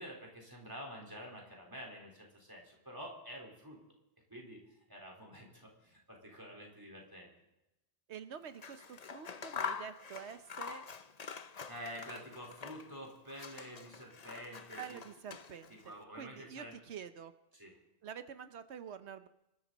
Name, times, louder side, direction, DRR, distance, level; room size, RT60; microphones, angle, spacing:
voice 1, 0.0-3.8 4.3-4.6 4.9-7.3 11.7-15.0 15.7-16.8 17.5-17.7, equal, 20° right, 0 dB, 4.3 m, -48 dB
voice 2, 8.1-10.9 14.8-17.3 18.0-19.3, right 8 dB, 85° right, 10 dB, 1.1 m, -47 dB
Scissors, 8.5-13.0 13.3-15.8, left 6 dB, 40° left, 0.8 m, -45 dB
25.5 x 12.5 x 4.1 m, 0.91 s
omnidirectional pair, 1.1 m